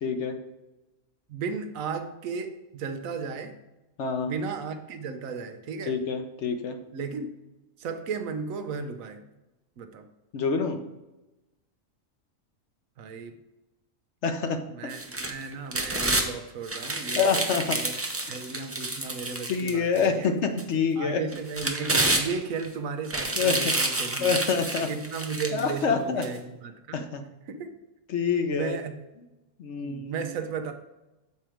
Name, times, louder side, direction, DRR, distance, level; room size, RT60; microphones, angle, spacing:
voice 1, 0.0-0.3 4.0-4.3 5.9-6.8 10.3-10.8 14.2-14.6 17.2-17.8 19.5-21.2 23.4-23.6 24.2-24.9 25.5-26.2 26.9-27.2 28.1-28.8 29.6-30.3, left 5 dB, 65° left, 6 dB, 1.0 m, -26 dB
voice 2, 1.3-3.6 4.2-6.0 6.9-7.3 7.8-9.2 9.8-10.0 13.0-13.4 14.7-15.0 15.3-17.9 18.3-20.3 21.0-24.4 24.7-27.1 27.5-27.7 28.5-28.9 29.8-30.7, right 5 dB, 90° right, 8 dB, 1.1 m, -35 dB
sound 1, 14.9-16.3 16.7-20.1 20.6-20.7 21.3-22.7 23.0-25.7 26.2-26.3, right 2 dB, 20° right, 0.4 m, -29 dB
7.1 x 4.5 x 4.9 m, 1.0 s
omnidirectional pair, 1.4 m